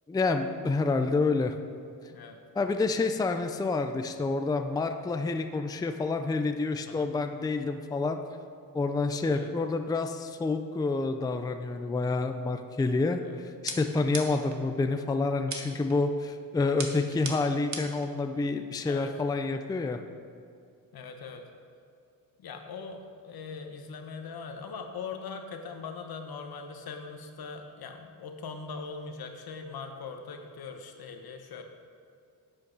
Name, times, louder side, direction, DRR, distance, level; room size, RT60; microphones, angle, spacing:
voice 1, 0.1-1.6 2.6-8.2 8.7-20.0, left 3 dB, 10° left, 6 dB, 0.4 m, -28 dB
sound 1, 13.7-14.6 15.5-16.0 16.8-18.1, right 4 dB, 50° right, 1.2 m, -38 dB
voice 2, 20.9-21.4 22.4-31.6, left 5 dB, 75° left, 5 dB, 1.1 m, -41 dB
11.5 x 8.3 x 4.0 m, 2.3 s
wide cardioid pair, 125°, 37 cm